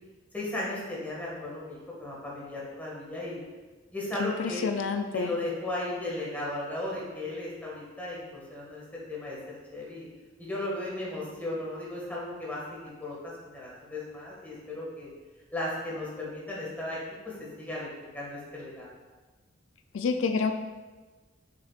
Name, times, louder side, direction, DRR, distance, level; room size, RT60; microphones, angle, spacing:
voice 1, 0.3-3.4 3.9-4.6 5.1-8.8 9.1-9.4 9.7-10.1 10.4-13.2 13.4-15.1 15.5-17.2 17.6-17.9 18.1-19.0, left 1 dB, 10° left, -6 dB, 1.8 m, -35 dB
voice 2, 4.2-5.3 19.9-20.5, left 5 dB, 90° left, 7 dB, 0.4 m, -28 dB
6.8 x 6.5 x 2.4 m, 1.3 s
head